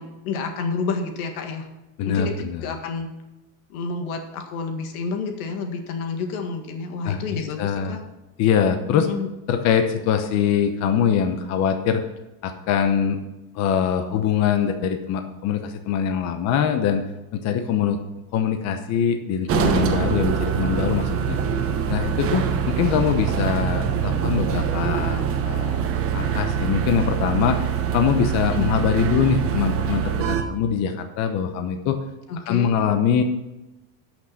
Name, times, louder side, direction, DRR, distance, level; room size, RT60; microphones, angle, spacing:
voice 1, 0.0-1.7 2.1-3.1 3.7-8.0 8.9-9.3 28.5-28.7 32.3-32.7, left 4 dB, 90° left, 5 dB, 1.9 m, -29 dB
voice 2, 2.0-2.7 7.0-8.0 8.4-9.1 9.5-12.0 12.4-13.2 13.5-17.0 17.3-18.0 18.3-21.4 21.9-27.6 27.9-32.0 32.5-33.2, left 7 dB, 40° left, 6 dB, 0.9 m, -23 dB
sound 1, 19.5-30.4, right 8 dB, 30° right, 1.0 m, -24 dB
11.5 x 6.1 x 5.8 m, 1.0 s
supercardioid pair, 155°, 42 cm